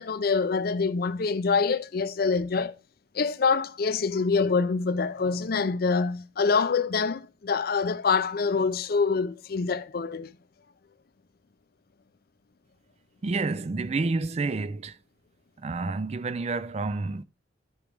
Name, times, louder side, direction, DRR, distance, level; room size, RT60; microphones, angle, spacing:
voice 1, 0.0-2.7 3.1-10.3, left 5 dB, 50° left, 0.5 m, -25 dB
voice 2, 13.2-15.0 15.6-17.2, right 3 dB, 35° right, 0.4 m, -29 dB
13.0 x 5.2 x 3.4 m
head